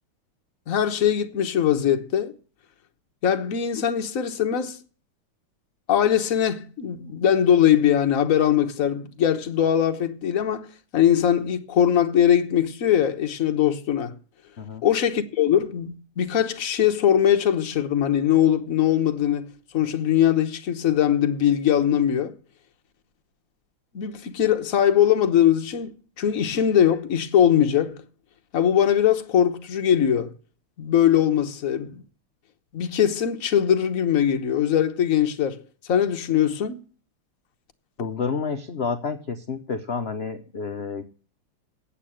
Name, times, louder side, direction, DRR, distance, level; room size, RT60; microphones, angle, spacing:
voice 1, 0.7-2.3 3.2-4.8 5.9-14.2 14.8-19.5 19.7-22.4 23.9-28.0 28.5-30.3 30.8-32.0 32.7-35.6 35.9-36.8, left 9 dB, 45° left, 1.3 m, -21 dB
voice 2, 38.0-41.0, left 5 dB, 80° left, 0.5 m, -29 dB
8.6 x 8.5 x 8.6 m
omnidirectional pair, 2.4 m